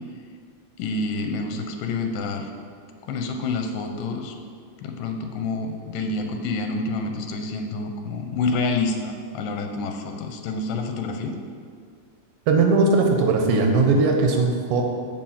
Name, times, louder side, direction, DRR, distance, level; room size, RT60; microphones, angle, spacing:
voice 1, 0.8-2.5 3.1-4.3 4.8-11.4, left 3 dB, 90° left, 4 dB, 2.3 m, -28 dB
voice 2, 12.5-14.8, right 3 dB, 85° right, 2 dB, 2.6 m, -19 dB
6.8 x 5.5 x 7.2 m, 2.1 s
omnidirectional pair, 3.9 m